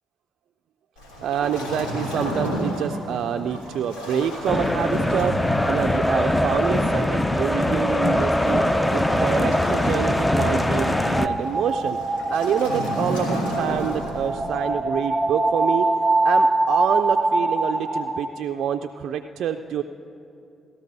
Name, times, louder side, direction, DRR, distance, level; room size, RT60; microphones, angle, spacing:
Waves surf, 1.0-14.6, equal, 85° left, 2.8 m, -33 dB
voice 1, 1.2-15.9 16.2-19.8, right 8 dB, 70° right, 5 dB, 0.3 m, -27 dB
sound 1, 4.5-11.3, left 1 dB, 15° left, 0.6 m, -22 dB
sound 2, 10.5-18.3, right 2 dB, 20° right, 1.3 m, -24 dB
18.0 x 13.5 x 2.7 m, 2.7 s
supercardioid pair, 50°, 0 cm